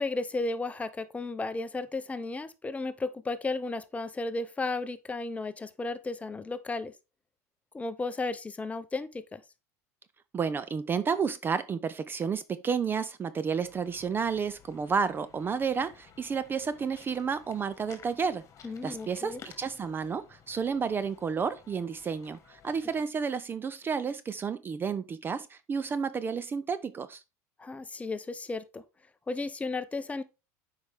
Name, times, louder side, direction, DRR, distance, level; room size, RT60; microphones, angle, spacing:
voice 1, 0.0-6.9 7.7-9.4 18.6-19.4 27.6-28.8 29.3-30.2, left 3 dB, 15° left, 0.7 m, -34 dB
voice 2, 10.3-18.4 18.8-27.2, right 6 dB, 25° right, 0.4 m, -31 dB
sound 1, 13.6-23.0, left 7 dB, 35° left, 1.6 m, -55 dB
7.9 x 4.9 x 3.4 m
supercardioid pair, 105°, 8 cm